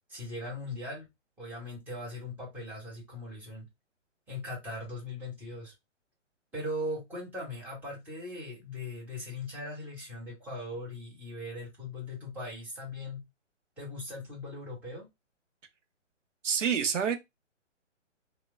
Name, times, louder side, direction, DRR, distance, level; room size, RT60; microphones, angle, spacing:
voice 1, 0.1-1.0 1.4-3.7 4.3-5.7 6.5-13.2 13.8-15.1, left 1 dB, 5° right, 1.0 m, -39 dB
voice 2, 16.4-17.2, right 7 dB, 75° right, 0.7 m, -27 dB
3.1 x 2.1 x 2.2 m
hypercardioid pair, 140°, 37 cm